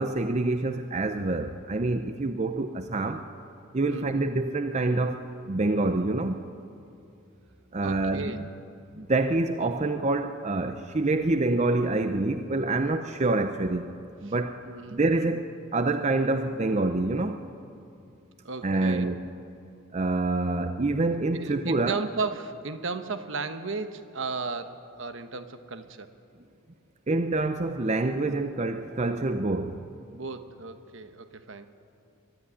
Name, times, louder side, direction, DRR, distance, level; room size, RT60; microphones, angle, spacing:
voice 1, 0.0-3.2 3.7-6.4 7.7-8.4 8.9-13.9 14.2-14.6 14.9-17.4 18.6-19.3 19.9-22.0 27.1-29.9, right 2 dB, 30° right, 8 dB, 0.6 m, -26 dB
voice 2, 7.8-8.5 14.7-15.4 18.4-19.2 21.3-26.1 30.1-31.7, right 4 dB, 60° right, 9 dB, 1.1 m, -35 dB
22.5 x 12.5 x 9.7 m, 2.6 s
head